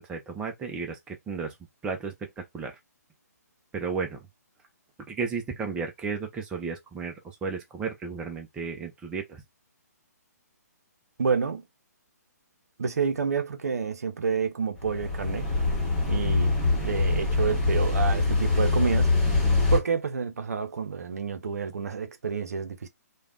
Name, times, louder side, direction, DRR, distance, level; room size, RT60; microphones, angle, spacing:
voice 1, 0.0-1.5 1.8-2.8 3.7-4.3 5.1-9.4 19.3-19.7, right 5 dB, 10° right, 0.4 m, -34 dB
voice 2, 11.2-11.6 12.8-15.5 16.1-19.1 19.7-22.9, right 6 dB, 65° right, 0.6 m, -29 dB
sound 1, 14.8-19.8, left 3 dB, 10° left, 1.3 m, -24 dB
3.2 x 2.2 x 2.4 m
figure-of-eight pair, 135°, 9 cm